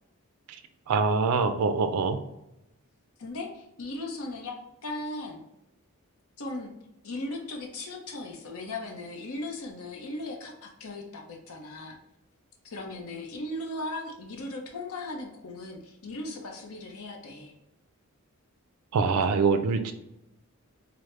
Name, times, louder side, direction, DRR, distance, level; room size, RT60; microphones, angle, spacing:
voice 1, 0.9-2.2 18.9-19.9, right 4 dB, 90° right, 9 dB, 0.4 m, -24 dB
voice 2, 3.2-4.5 4.8-5.4 6.4-6.7 7.0-12.0 12.6-17.5, left 2 dB, 80° left, 2 dB, 0.6 m, -37 dB
4.7 x 2.0 x 3.1 m, 0.89 s
head